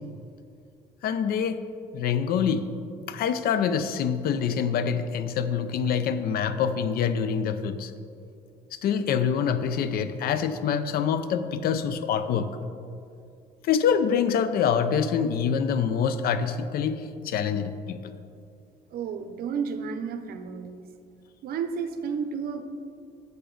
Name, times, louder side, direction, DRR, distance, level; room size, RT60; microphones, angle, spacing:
voice 1, 1.0-1.6 1.9-2.7 3.1-7.9 8.7-12.6 13.6-18.1, left 7 dB, 65° left, 11 dB, 0.5 m, -26 dB
voice 2, 18.9-20.9 21.4-22.6, right 6 dB, 65° right, 9 dB, 0.7 m, -32 dB
7.8 x 6.8 x 3.8 m, 2.5 s
cardioid pair, 110°, 17 cm